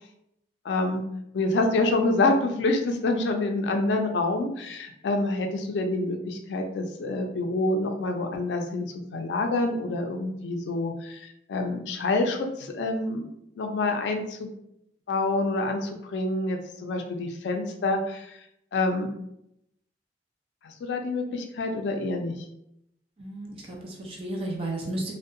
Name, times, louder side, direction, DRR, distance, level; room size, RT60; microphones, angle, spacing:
voice 1, 0.6-1.0 1.3-13.3 13.6-14.5 15.1-18.4 18.7-19.1 20.6-22.3, left 2 dB, 80° left, 4 dB, 0.4 m, -27 dB
voice 2, 23.2-25.1, right 1 dB, 30° right, -2 dB, 0.5 m, -33 dB
2.6 x 2.1 x 2.5 m, 0.79 s
head